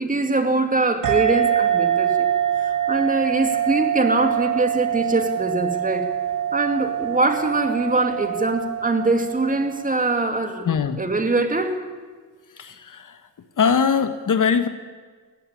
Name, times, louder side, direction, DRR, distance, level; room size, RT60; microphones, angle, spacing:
voice 1, 0.0-2.2 2.6-6.1 6.5-10.7 11.0-11.8, right 2 dB, 20° right, 6 dB, 2.5 m, -23 dB
sound 1, 1.0-10.1, right 10 dB, 45° right, 1.3 m, -24 dB
voice 2, 10.6-11.0 12.6-13.2 13.6-14.7, left 6 dB, 45° left, 9 dB, 1.3 m, -21 dB
18.5 x 15.0 x 9.9 m, 1.5 s
cardioid pair, 110°, 43 cm